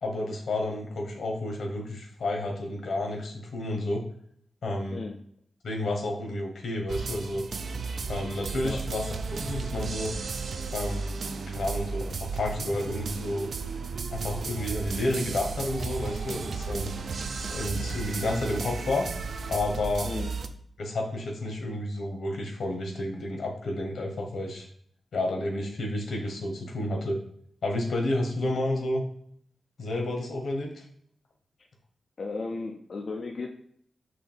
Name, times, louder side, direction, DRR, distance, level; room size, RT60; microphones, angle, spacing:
voice 1, 0.0-4.0 4.6-5.0 5.6-7.4 8.1-10.1 10.7-11.1 11.5-13.5 14.1-16.9 17.4-19.1 19.5-20.1 20.8-24.7 25.1-27.2 27.6-29.0 29.8-30.8, left 1 dB, 80° left, 1 dB, 1.2 m, -30 dB
sound 1, 6.9-20.5, right 4 dB, 65° right, 0.4 m, -34 dB
voice 2, 32.2-33.5, left 3 dB, 45° left, 1 dB, 0.4 m, -35 dB
6.0 x 2.6 x 3.5 m, 0.65 s
wide cardioid pair, 180°, 0 cm